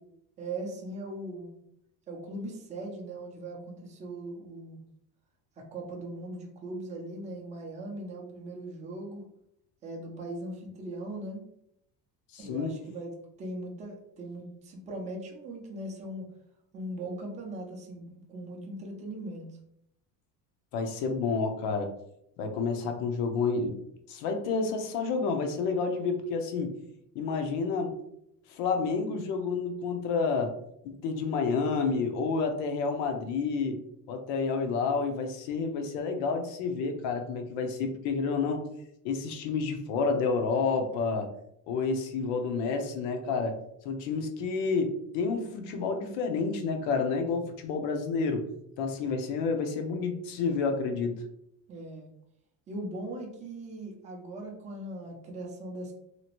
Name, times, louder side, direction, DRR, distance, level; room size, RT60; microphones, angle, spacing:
voice 1, 0.4-1.6 2.1-4.8 5.6-9.2 9.8-11.4 12.4-13.1 13.4-16.3 16.7-19.5 51.7-52.1 52.7-55.9, right 1 dB, 20° right, 0 dB, 0.4 m, -39 dB
voice 2, 12.3-12.7 20.7-21.9 22.4-23.8 24.1-26.7 27.1-27.9 28.5-30.5 30.8-33.8 34.1-38.6 39.0-41.3 41.7-43.6 43.8-48.4 48.8-51.2, left 4 dB, 80° left, 5 dB, 0.7 m, -29 dB
2.9 x 2.5 x 2.9 m, 0.74 s
cardioid pair, 170°, 42 cm